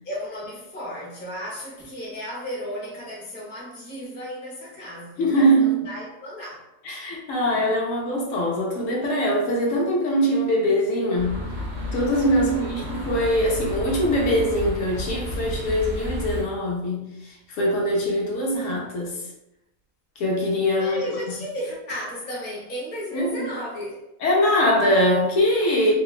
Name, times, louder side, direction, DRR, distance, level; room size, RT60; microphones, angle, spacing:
voice 1, 0.0-6.7 12.3-12.8 20.7-24.0 25.9-26.0, equal, 15° left, -5 dB, 0.3 m, -34 dB
voice 2, 5.2-5.9 6.9-11.4 11.9-19.2 20.2-21.2 23.1-23.5 24.2-25.9, equal, 70° left, -1 dB, 0.9 m, -22 dB
sound 1, 11.2-16.4, equal, 45° right, 0.6 m, -32 dB
2.8 x 2.0 x 2.3 m, 0.87 s
omnidirectional pair, 1.4 m